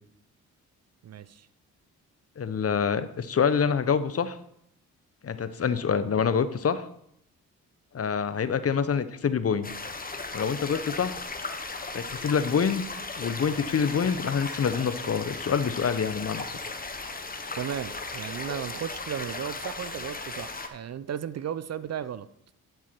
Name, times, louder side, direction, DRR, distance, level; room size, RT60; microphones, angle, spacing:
voice 1, 1.0-1.5 17.6-22.3, right 9 dB, 45° right, 15 dB, 0.5 m, -35 dB
voice 2, 2.4-4.4 5.2-6.8 7.9-9.7 10.3-11.2 11.9-12.8 13.2-16.6, left 6 dB, 40° left, 13 dB, 0.8 m, -26 dB
sound 1, 9.6-20.7, left 3 dB, 25° left, 1.1 m, -36 dB
11.0 x 4.7 x 4.5 m, 0.71 s
supercardioid pair, 50°, 38 cm